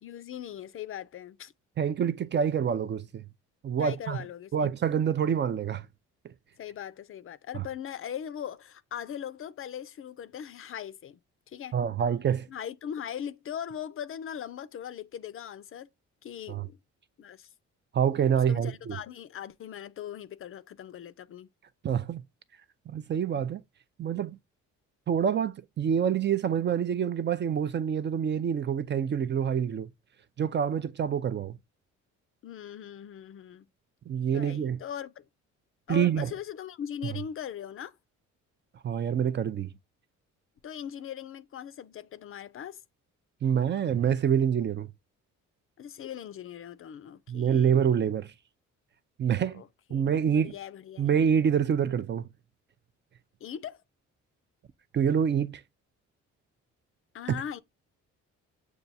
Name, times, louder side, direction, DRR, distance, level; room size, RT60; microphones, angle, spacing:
voice 1, 0.0-1.5 3.8-4.7 6.6-11.2 11.5-11.8 12.5-15.9 16.2-16.8 17.2-17.5 18.5-21.5 32.4-33.7 34.3-35.2 35.9-37.9 40.6-42.8 45.8-47.7 49.5-50.0 50.3-51.1 53.4-53.8 57.1-57.6, left 9 dB, 45° left, 0.4 m, -40 dB
voice 2, 1.8-3.2 3.6-4.2 4.5-5.9 7.5-7.6 11.7-12.5 16.5-16.7 17.9-19.0 21.8-22.2 22.9-23.6 24.0-24.4 25.1-29.9 30.4-31.6 34.1-34.8 35.9-36.3 38.8-39.7 43.4-44.9 47.3-48.3 49.2-49.6 49.9-50.5 51.0-52.3 54.9-55.6, right 8 dB, 40° right, 0.4 m, -26 dB
6.9 x 2.3 x 2.6 m
cardioid pair, 90°, 30 cm